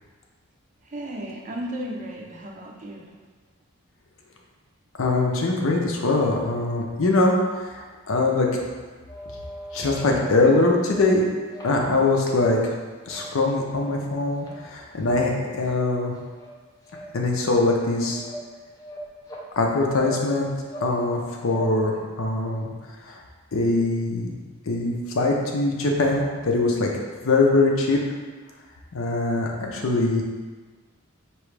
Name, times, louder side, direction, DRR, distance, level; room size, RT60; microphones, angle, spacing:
voice 1, 0.8-3.1, right 1 dB, 35° right, -1 dB, 0.5 m, -34 dB
voice 2, 5.0-8.5 9.7-11.2 11.6-12.7 13.1-16.1 17.1-18.2 19.6-20.5 20.8-22.7 23.1-23.2 23.5-24.3 24.7-26.9 27.2-28.0 28.9-30.2, left 2 dB, 75° left, 0 dB, 0.6 m, -22 dB
sound 1, 9.1-10.3 10.8-11.1 11.5-12.6 13.0-13.3 13.6-14.0 14.4-14.6 15.0-15.3 15.7-15.8 16.1-16.5 16.8-17.0 17.5-17.7 18.0-18.4 18.8-19.4 20.0-20.2 20.5-20.9 21.2-21.6, right 1 dB, 15° left, 0.5 m, -40 dB
4.7 x 3.0 x 3.2 m, 1.4 s
head